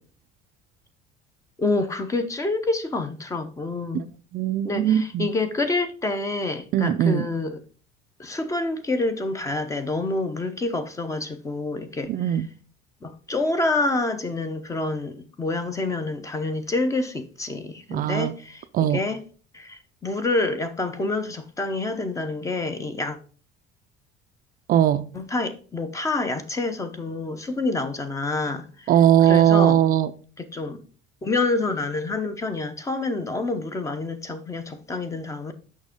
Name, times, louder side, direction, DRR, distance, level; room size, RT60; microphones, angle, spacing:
voice 1, 1.6-4.1 4.6-7.6 8.2-12.1 13.0-19.2 19.5-23.2 25.1-28.9 29.2-29.8 30.4-30.8 31.2-35.5, left 2 dB, 15° left, 0.7 m, -27 dB
voice 2, 4.3-5.3 6.7-7.3 12.1-12.5 17.9-18.3 18.7-19.0 24.7-25.0 28.9-30.1, right 10 dB, 45° right, 0.4 m, -19 dB
6.3 x 5.7 x 3.5 m
cardioid pair, 155°, 21 cm